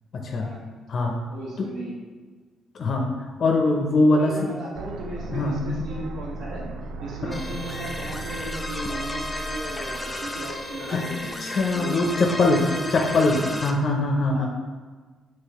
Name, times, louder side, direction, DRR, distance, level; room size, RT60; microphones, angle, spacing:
voice 1, 0.1-0.5 0.9-1.2 1.6-1.7 2.8-3.1 3.4-4.4 5.3-5.8 7.2-7.4 10.9-11.0 11.4-12.6 12.9-13.3 13.6-14.5, left 2 dB, 55° left, 1 dB, 0.5 m, -22 dB
voice 2, 1.3-1.9 4.1-6.6 7.0-11.4 11.7-13.6 14.3-14.5, right 1 dB, 70° right, -3 dB, 1.2 m, -36 dB
sound 1, 4.8-10.7, right 3 dB, 90° right, 0.4 m, -37 dB
sound 2, 7.3-13.7, left 1 dB, 10° left, 0.5 m, -33 dB
5.6 x 3.1 x 2.9 m, 1.4 s
cardioid pair, 90°, 0 cm